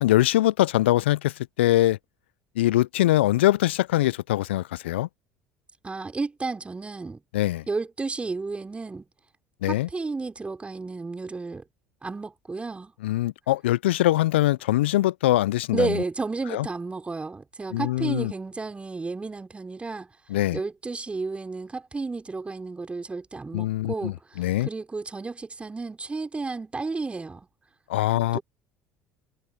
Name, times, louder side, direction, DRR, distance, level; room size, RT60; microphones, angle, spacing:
voice 1, 0.0-2.0 2.6-5.1 7.3-7.6 9.6-9.9 13.0-16.0 16.5-16.7 17.7-18.3 20.3-20.6 23.5-24.7 27.9-28.4, left 15 dB, 75° left, 0.9 m, -23 dB
voice 2, 5.8-7.2 7.7-9.1 9.7-11.6 12.0-12.9 15.7-20.1 20.5-27.5 28.3-28.4, right 3 dB, 20° right, 6.5 m, -32 dB
figure-of-eight pair, 65°, 6 cm